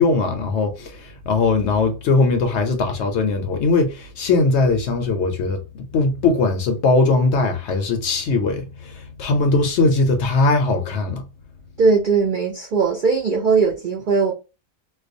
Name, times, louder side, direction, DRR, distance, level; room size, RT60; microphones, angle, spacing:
voice 1, 0.0-11.3, left 3 dB, 65° left, 0.7 m, -20 dB
voice 2, 11.8-14.3, right 4 dB, 70° right, 0.4 m, -19 dB
2.4 x 2.2 x 2.5 m
omnidirectional pair, 1.4 m